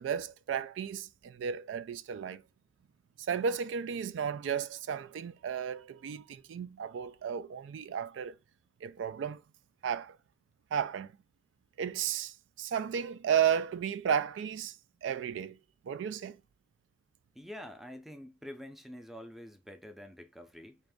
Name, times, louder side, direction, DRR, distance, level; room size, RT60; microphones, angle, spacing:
voice 1, 0.0-2.4 3.2-8.4 8.8-9.4 9.8-10.2 10.7-11.1 11.8-14.8 15.0-15.6 15.8-16.4, right 8 dB, 85° right, 0.3 m, -33 dB
voice 2, 17.3-20.8, left 1 dB, ahead, 0.5 m, -47 dB
4.0 x 2.5 x 3.5 m
head